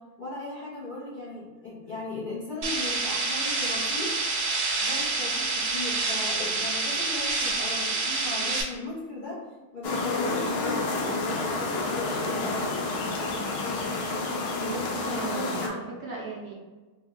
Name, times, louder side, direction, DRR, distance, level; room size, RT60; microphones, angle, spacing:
voice 1, 0.2-4.1 4.8-9.4 9.7-11.2 11.5-12.7, left 2 dB, 45° left, -8 dB, 0.7 m, -37 dB
sound 1, 2.6-8.6, right 3 dB, 85° right, 1.2 m, -27 dB
sound 2, 9.8-15.7, left 2 dB, 85° left, 0.5 m, -29 dB
voice 2, 14.6-16.5, right 3 dB, 65° right, -3 dB, 1.0 m, -37 dB
3.2 x 2.2 x 3.6 m, 1.3 s
omnidirectional pair, 1.6 m